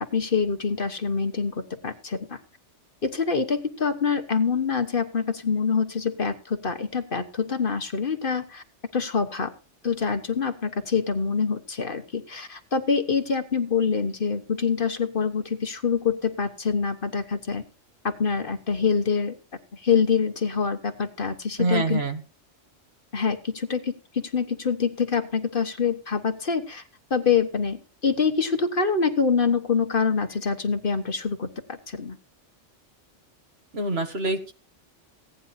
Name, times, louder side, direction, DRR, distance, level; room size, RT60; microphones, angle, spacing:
voice 1, 0.1-2.4 3.0-8.6 8.9-9.5 9.8-17.6 18.0-19.4 19.7-22.0 23.1-26.8 27.1-32.2, left 5 dB, 45° left, 7 dB, 1.4 m, -25 dB
voice 2, 21.6-22.2 33.7-34.5, right 2 dB, 55° right, 7 dB, 1.8 m, -26 dB
16.5 x 9.8 x 4.2 m, 0.35 s
omnidirectional pair, 1.3 m